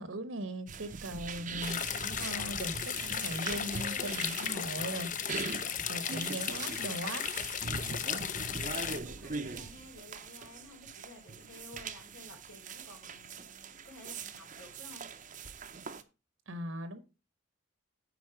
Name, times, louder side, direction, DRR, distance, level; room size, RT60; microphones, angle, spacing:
voice 1, 0.0-5.6 5.9-7.3 16.5-17.0, right 1 dB, 75° right, 1.1 m, -39 dB
sound 1, 0.7-16.0, right 5 dB, 40° right, 0.7 m, -42 dB
sound 2, 1.6-9.0, left 8 dB, 40° left, 0.6 m, -35 dB
voice 2, 8.5-15.0, left 2 dB, 75° left, 3.9 m, -53 dB
9.4 x 4.1 x 6.0 m
head